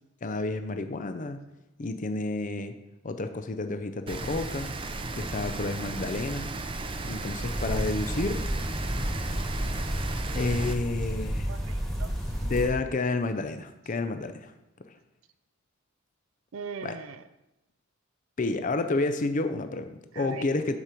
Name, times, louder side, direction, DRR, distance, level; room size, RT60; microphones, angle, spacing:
voice 1, 0.2-1.4 1.8-2.8 3.0-4.7 5.2-6.5 7.0-8.4 10.3-11.5 12.4-14.5 16.8-17.0 18.4-20.7, left 3 dB, 40° left, 8 dB, 0.6 m, -30 dB
Rain, 4.1-10.7, right 2 dB, 25° right, 0.5 m, -35 dB
sound 1, 7.4-12.7, equal, ahead, 1.7 m, -31 dB
voice 2, 11.5-12.4 16.5-17.2 20.1-20.5, right 6 dB, 75° right, 11 dB, 0.5 m, -41 dB
7.2 x 5.1 x 6.0 m, 0.95 s
head